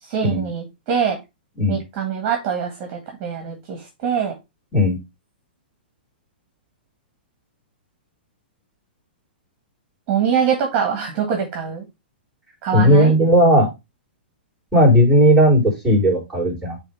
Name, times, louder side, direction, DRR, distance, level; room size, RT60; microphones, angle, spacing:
voice 1, 0.0-1.2 1.7-4.3 10.1-11.8 12.6-13.1, right 7 dB, 35° right, 3 dB, 1.7 m, -23 dB
voice 2, 12.7-13.7 14.7-16.8, equal, ahead, -7 dB, 3.9 m, -15 dB
9.1 x 3.4 x 3.5 m, 0.23 s
hypercardioid pair, 145°, 6 cm